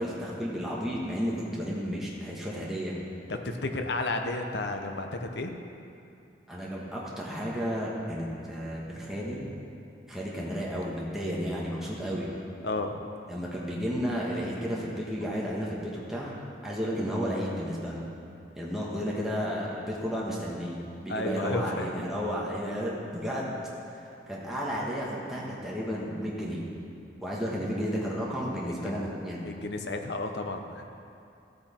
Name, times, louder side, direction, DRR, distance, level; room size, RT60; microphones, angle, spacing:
voice 1, 0.0-2.9 6.5-9.4 10.1-12.3 13.3-16.3 16.6-18.1 18.5-23.5 24.3-26.7 27.2-29.5, equal, ahead, -6 dB, 1.5 m, -32 dB
voice 2, 3.3-5.5 12.6-13.0 21.1-21.9 28.8-29.0 29.4-30.9, left 2 dB, 70° left, 5 dB, 0.9 m, -32 dB
14.0 x 8.9 x 4.4 m, 2.6 s
head